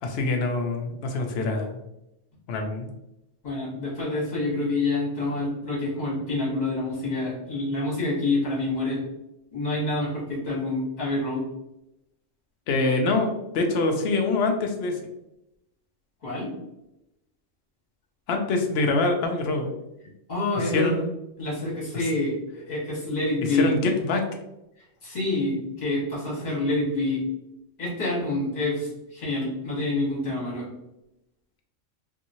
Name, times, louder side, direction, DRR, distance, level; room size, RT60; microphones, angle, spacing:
voice 1, 0.0-1.8 2.5-2.9 12.7-15.0 18.3-19.7 20.6-21.0 21.9-22.0 23.5-24.2, left 3 dB, 65° left, 3 dB, 0.7 m, -25 dB
voice 2, 3.4-9.0 9.5-11.4 16.2-16.5 20.3-21.0 21.4-23.7 25.0-27.2 27.8-30.7, left 2 dB, 35° left, -6 dB, 1.3 m, -27 dB
2.9 x 2.7 x 2.6 m, 0.88 s
omnidirectional pair, 1.3 m